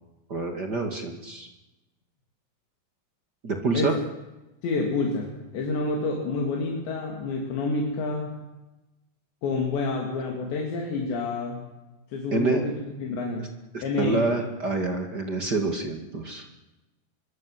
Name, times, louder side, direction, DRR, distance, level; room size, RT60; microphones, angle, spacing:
voice 1, 0.3-1.5 3.4-3.9 12.3-12.6 13.7-16.4, right 3 dB, 35° right, 4 dB, 1.9 m, -27 dB
voice 2, 4.6-8.4 9.4-11.7 12.1-12.7 13.0-13.5 13.8-14.4, left 3 dB, 80° left, 0 dB, 5.4 m, -28 dB
25.0 x 23.0 x 7.8 m, 1.0 s
omnidirectional pair, 5.0 m